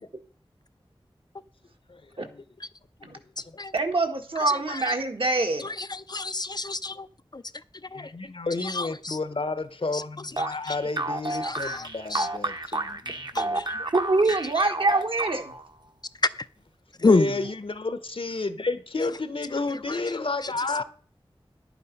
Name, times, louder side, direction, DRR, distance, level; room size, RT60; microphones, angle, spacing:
voice 1, 1.9-2.4 3.0-3.2 3.5-3.6 7.9-13.6 17.0-20.8, left 3 dB, 65° left, 1.0 m, -31 dB
voice 2, 3.7-5.7 13.9-15.5, right 2 dB, 65° right, 1.7 m, -25 dB
voice 3, 4.5-4.9 5.6-7.1 7.3-7.4 7.9-8.1 8.6-9.2 9.9-10.0 10.6-10.7 11.3-12.3 13.3-13.8 16.4-16.5 17.0-17.3 19.9-20.0 20.4-20.5, left 3 dB, 45° left, 0.5 m, -28 dB
sound 1, 10.4-15.7, right 2 dB, 45° right, 1.1 m, -31 dB
11.0 x 8.5 x 5.3 m
wide cardioid pair, 70°, 10 cm